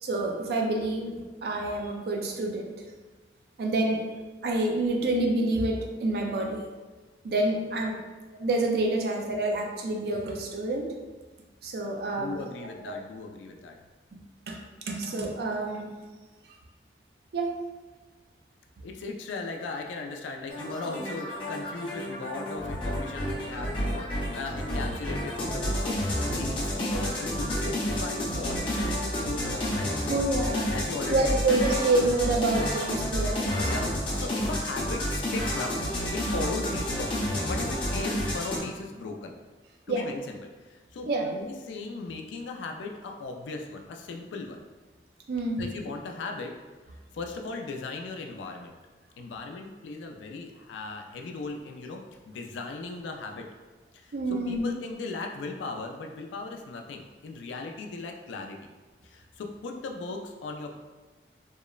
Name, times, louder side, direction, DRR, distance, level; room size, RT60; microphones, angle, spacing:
voice 1, 0.0-2.7 3.6-4.1 4.4-6.7 7.2-8.0 8.3-11.0 11.6-12.4 12.9-13.0 14.1-14.2 14.5-14.6 14.9-15.9 17.3-17.6 30.1-30.7 31.1-33.9 39.9-40.1 41.1-41.2 45.3-45.7 54.1-54.7, right 2 dB, 60° right, 1 dB, 0.4 m, -28 dB
voice 2, 12.1-13.8 18.8-30.2 30.7-31.6 33.6-35.7 36.1-39.3 39.9-44.6 45.6-46.5 47.1-48.8 49.2-53.5 53.9-58.6 59.0-60.8, left 3 dB, 90° left, 3 dB, 0.3 m, -37 dB
sound 1, 20.5-38.6, equal, 25° left, 0.5 m, -30 dB
2.9 x 2.0 x 2.3 m, 1.3 s
head